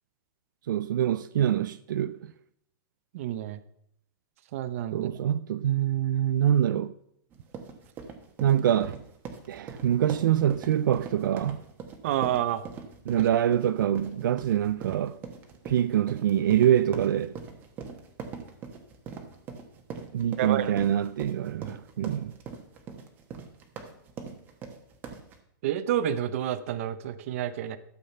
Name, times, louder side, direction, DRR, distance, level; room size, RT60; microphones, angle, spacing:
voice 1, 0.7-2.3 4.9-6.9 8.4-9.0 9.5-11.6 13.1-15.2 15.6-17.4 20.1-22.3, right 10 dB, 75° right, 0.5 m, -25 dB
voice 2, 3.1-3.6 4.5-5.1 12.0-12.6 20.4-20.7 25.6-27.8, right 11 dB, 45° right, 0.8 m, -29 dB
sound 1, 7.3-25.4, right 6 dB, 20° right, 1.1 m, -42 dB
12.0 x 7.6 x 5.4 m
supercardioid pair, 170°, 11 cm